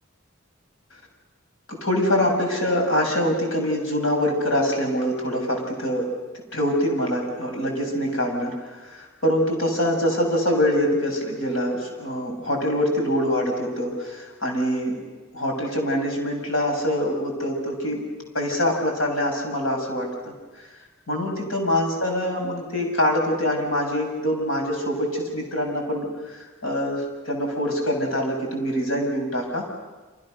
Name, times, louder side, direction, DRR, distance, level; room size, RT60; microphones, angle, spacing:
voice 1, 1.7-6.1 6.5-15.0 15.3-18.0 18.3-20.3 21.1-29.7, equal, 75° left, 2 dB, 7.1 m, -24 dB
29.5 x 27.0 x 6.7 m, 1.3 s
head